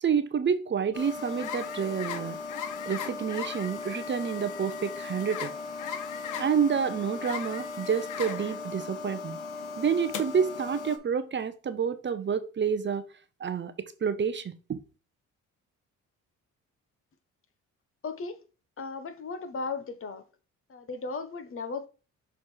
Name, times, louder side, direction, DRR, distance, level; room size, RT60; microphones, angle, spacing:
voice 1, 0.0-2.4 2.9-5.5 6.4-9.4 9.8-13.0 13.4-14.8, right 7 dB, 40° right, 0.8 m, -29 dB
sound 1, 0.9-11.0, left 5 dB, 85° left, 1.0 m, -37 dB
voice 2, 18.0-18.4 18.8-20.2 20.7-21.9, left 4 dB, 45° left, 0.9 m, -36 dB
6.3 x 3.4 x 4.4 m
cardioid pair, 90°, 30 cm